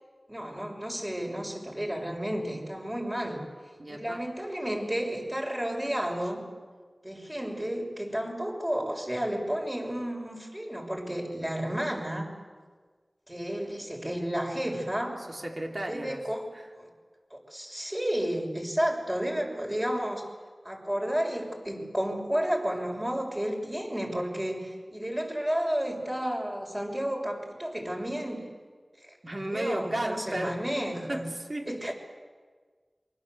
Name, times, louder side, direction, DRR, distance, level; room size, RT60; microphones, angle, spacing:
voice 1, 0.3-3.4 3.9-6.4 7.0-12.3 13.3-15.2 15.9-16.5 16.8-16.9 17.3-20.2 20.6-28.4 29.0-29.2 29.5-31.3 31.7-31.9, equal, 20° right, 0 dB, 6.6 m, -32 dB
voice 2, 3.8-4.2 15.3-16.2 16.5-16.7 29.2-30.6 31.1-31.9, right 1 dB, 45° right, 1 dB, 3.6 m, -34 dB
27.5 x 23.5 x 8.1 m, 1.5 s
wide cardioid pair, 50°, 0 cm